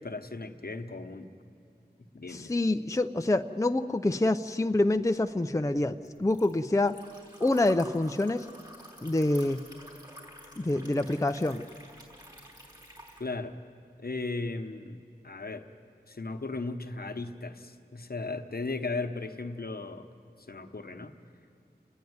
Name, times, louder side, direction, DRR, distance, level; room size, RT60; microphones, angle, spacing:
voice 1, 0.0-1.3 2.1-2.5 13.2-13.6 14.0-15.7 16.1-20.1 20.4-21.1, left 3 dB, 60° left, 7 dB, 1.0 m, -36 dB
voice 2, 2.3-7.0 7.4-8.5 9.0-9.6 10.6-11.6, left 2 dB, 20° left, 7 dB, 0.5 m, -26 dB
Liquid, 5.0-13.2, equal, 25° right, 4.5 m, -50 dB
29.5 x 10.5 x 9.5 m, 2.5 s
wide cardioid pair, 45°, 18 cm